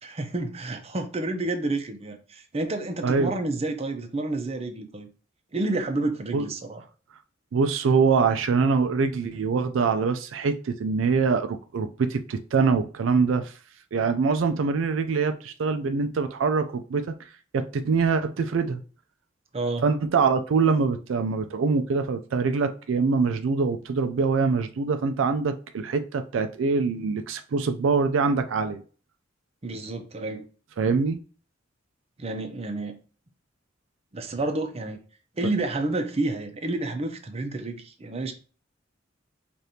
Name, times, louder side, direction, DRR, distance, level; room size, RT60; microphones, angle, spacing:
voice 1, 0.0-5.1 5.5-6.8 19.5-19.9 29.6-30.4 32.2-33.0 34.1-35.0 35.4-38.3, right 2 dB, 35° right, 0.6 m, -29 dB
voice 2, 3.0-3.3 6.3-6.5 7.5-13.5 13.9-17.1 17.5-18.8 19.8-28.8 30.8-31.2, right 4 dB, 85° right, 0.4 m, -24 dB
4.9 x 2.5 x 2.8 m
head